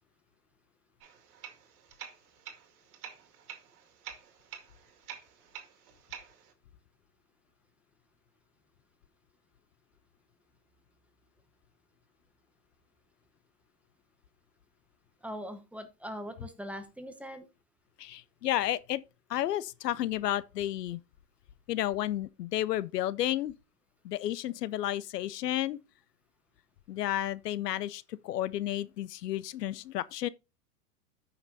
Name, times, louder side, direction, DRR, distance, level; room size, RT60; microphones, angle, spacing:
sound 1, 1.0-6.5, right 8 dB, 65° right, 2.1 m, -48 dB
voice 1, 15.2-17.5, equal, 5° right, 0.8 m, -41 dB
voice 2, 18.0-19.0 19.3-21.0 21.7-23.5 24.0-25.8 26.9-30.3, left 13 dB, 85° left, 0.6 m, -32 dB
14.0 x 5.9 x 2.7 m
hypercardioid pair, 110°, 47 cm